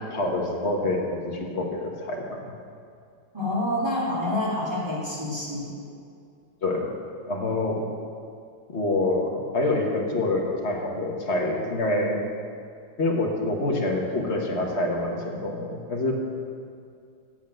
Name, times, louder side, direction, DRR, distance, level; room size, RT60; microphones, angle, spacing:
voice 1, 0.1-2.5 6.6-6.9 7.2-7.9 8.7-12.2 13.0-16.1, left 2 dB, 40° left, 0 dB, 1.5 m, -26 dB
voice 2, 3.3-5.8, left 1 dB, 15° right, -5 dB, 2.4 m, -27 dB
9.1 x 8.2 x 7.7 m, 2.3 s
omnidirectional pair, 2.0 m